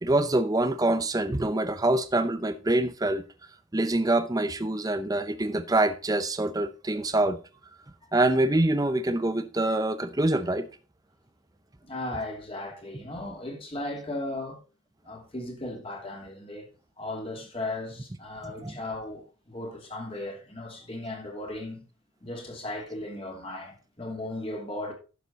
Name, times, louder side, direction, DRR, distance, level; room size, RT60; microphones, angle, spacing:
voice 1, 0.0-3.2 3.7-7.4 8.1-10.7 18.6-18.7, right 2 dB, 15° right, 0.6 m, -25 dB
voice 2, 11.9-14.6 15.0-16.7 17.0-21.8 22.2-24.9, left 2 dB, 25° left, 2.7 m, -36 dB
11.5 x 7.0 x 4.1 m
head